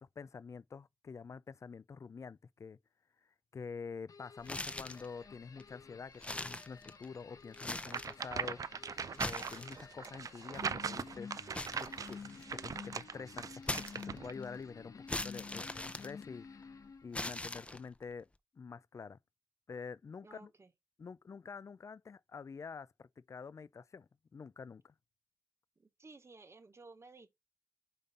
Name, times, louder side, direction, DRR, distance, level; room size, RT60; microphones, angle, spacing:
voice 1, 0.0-2.8 3.5-8.9 9.2-11.4 11.8-12.2 12.5-18.3 18.5-19.2 19.7-20.5 21.0-24.9, left 5 dB, 60° left, 0.3 m, -47 dB
sound 1, 4.1-17.3, left 5 dB, 90° left, 0.9 m, -52 dB
sound 2, 4.4-5.1 5.6-5.7 6.1-7.2 7.5-8.2 9.0-10.1 11.5-12.6 13.6-14.4 15.1-16.6 17.1-18.0, left 2 dB, 20° left, 0.6 m, -41 dB
sound 3, 7.8-14.3, right 6 dB, 90° right, 0.4 m, -40 dB
voice 2, 20.2-20.7 25.8-27.4, right 3 dB, 50° right, 1.2 m, -56 dB
5.3 x 5.2 x 4.1 m
wide cardioid pair, 90°, 6 cm